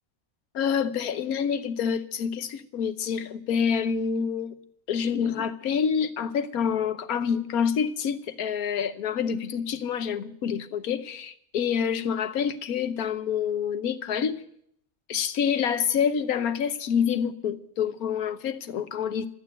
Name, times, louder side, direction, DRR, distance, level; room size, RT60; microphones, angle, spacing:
voice 1, 0.5-4.6 4.9-14.4 15.1-19.3, left 7 dB, 90° left, 1.4 m, -27 dB
13.5 x 9.1 x 9.0 m
omnidirectional pair, 1.5 m